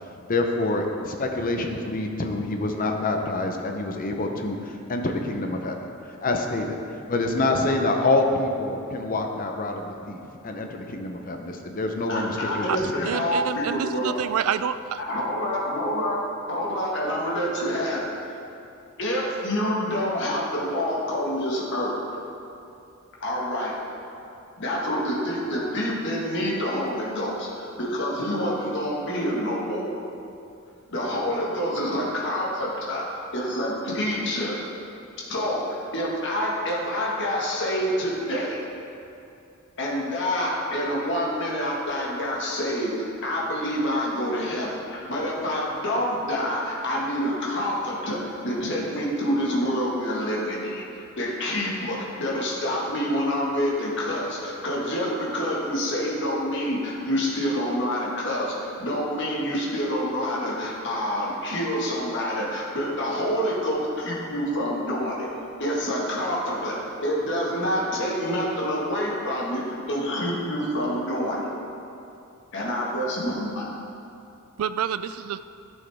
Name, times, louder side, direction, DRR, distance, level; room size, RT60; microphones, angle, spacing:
voice 1, 0.3-5.8 6.2-6.8 7.1-13.3, left 2 dB, 40° left, 3 dB, 0.7 m, -26 dB
voice 2, 12.1-14.1 15.0-16.2 16.5-18.1 19.0-22.0 23.2-23.7 24.6-29.9 30.9-33.0 33.3-34.5 35.3-35.6 35.9-38.6 39.8-48.2 48.4-50.8 51.2-65.3 65.6-71.5 72.5-73.6, equal, 55° left, -4 dB, 1.6 m, -27 dB
voice 3, 13.0-15.0 74.6-75.4, right 8 dB, 80° right, 14 dB, 0.3 m, -28 dB
11.0 x 6.3 x 3.5 m, 2.6 s
head